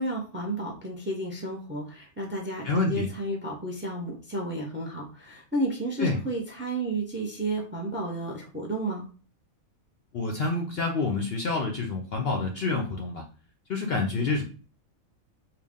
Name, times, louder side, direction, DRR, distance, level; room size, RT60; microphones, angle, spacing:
voice 1, 0.0-9.1, right 1 dB, 10° right, 0 dB, 0.6 m, -32 dB
voice 2, 2.6-3.1 6.0-6.2 10.1-13.2 13.7-14.4, left 3 dB, 60° left, 2 dB, 0.7 m, -27 dB
3.9 x 2.3 x 3.4 m, 0.38 s
omnidirectional pair, 1.4 m